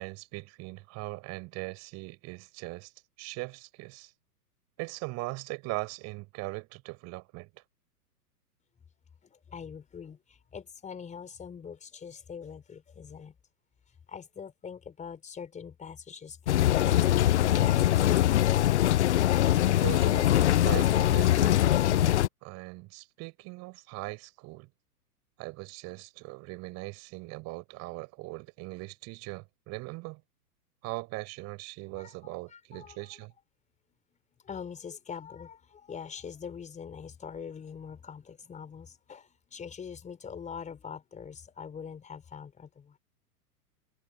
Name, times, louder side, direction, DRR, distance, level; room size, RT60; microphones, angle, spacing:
voice 1, 0.0-2.9 3.2-4.1 4.8-7.5 19.8-22.2 22.4-24.7 25.4-30.2 30.8-33.3, right 24 dB, 35° right, 4.5 m, -40 dB
voice 2, 9.2-13.3 14.1-18.4 32.0-32.1 32.5-33.1 34.4-43.0, left 7 dB, 15° left, 5.0 m, -43 dB
sound 1, 16.5-22.3, left 13 dB, 50° left, 0.4 m, -23 dB
figure-of-eight pair, 105°, 48 cm